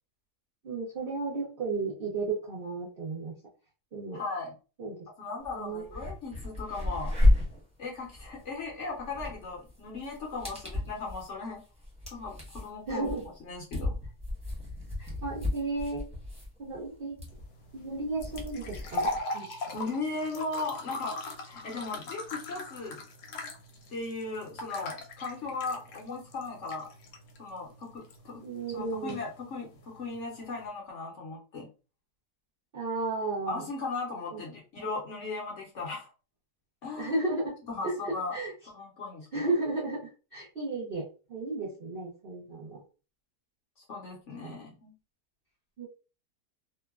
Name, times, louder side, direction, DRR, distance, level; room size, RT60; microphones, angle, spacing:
voice 1, 0.6-3.3 3.9-4.2 4.8-5.0 5.5-5.9 12.9-13.2 15.0-16.0 16.6-17.2 17.7-19.5 28.4-29.2 32.7-33.6 34.3-34.4 37.0-37.6 37.8-38.5 39.3-42.8 44.4-44.6 45.8-45.9, right 3 dB, 60° right, -5 dB, 0.6 m, -34 dB
voice 2, 4.1-4.5 5.2-7.2 7.8-11.6 12.1-13.1 13.4-14.0 19.7-21.2 21.4-23.0 23.9-26.9 27.4-28.4 28.7-31.7 33.5-36.1 36.8-37.1 37.7-38.3 38.7-39.5 43.9-44.9, left 3 dB, 60° left, -2 dB, 0.9 m, -37 dB
sound 1, 5.4-5.5 5.8-19.2, left 1 dB, 5° right, 0.8 m, -32 dB
sound 2, 17.3-30.7, left 2 dB, 80° left, 1.2 m, -41 dB
3.0 x 2.2 x 2.3 m, 0.34 s
omnidirectional pair, 1.7 m